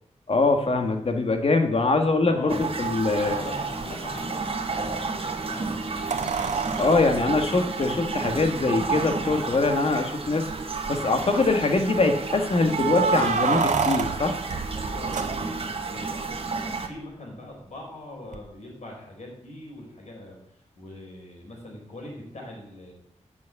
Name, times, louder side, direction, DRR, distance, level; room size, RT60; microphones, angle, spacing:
voice 1, 0.3-3.3 6.8-10.5 10.9-14.4, left 3 dB, 50° left, 5 dB, 1.6 m, -23 dB
voice 2, 2.3-2.7 3.2-6.3 14.7-20.4 20.7-22.9, left 1 dB, 70° left, -1 dB, 4.3 m, -41 dB
sound 1, 2.5-16.9, right 4 dB, 50° right, 1.4 m, -31 dB
sound 2, 3.8-3.9 6.1-8.5 9.4-9.5 9.8-9.9 10.5-11.0 12.7-15.8 18.3-18.4, right 5 dB, 85° right, 0.8 m, -28 dB
8.5 x 6.2 x 8.2 m, 0.76 s
wide cardioid pair, 110°, 12 cm